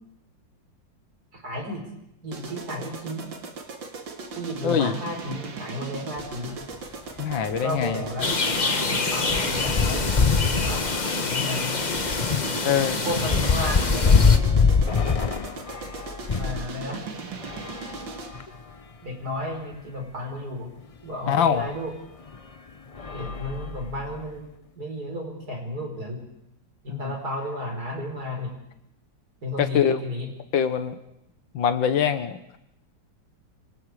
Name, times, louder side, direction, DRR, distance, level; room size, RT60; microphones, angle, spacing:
voice 1, 1.3-1.8 2.2-3.3 4.4-6.6 7.5-8.5 8.9-10.9 11.2-11.8 12.6-14.5 16.3-17.1 19.0-20.7 21.0-22.0 23.1-24.5 24.8-26.2 26.8-28.5 29.4-30.3, left 1 dB, 50° right, 2 dB, 5.3 m, -33 dB
sound 1, 2.3-18.5, right 4 dB, 80° right, 2.8 m, -38 dB
sound 2, 6.2-6.4 6.7-6.8 7.2-16.6 17.4-18.7 19.4-19.5 19.7-19.8 21.5-21.7 22.3-22.5 22.9-24.2, left 5 dB, 65° left, 0.3 m, -25 dB
voice 2, 7.2-8.0 12.7-13.0 21.3-21.7 26.9-27.1 29.6-30.0 30.5-31.0 31.5-32.6, left 8 dB, 90° left, 10 dB, 2.0 m, -23 dB
sound 3, 8.2-14.4, left 4 dB, 30° left, 1.1 m, -27 dB
26.0 x 25.0 x 5.0 m, 0.84 s
omnidirectional pair, 2.0 m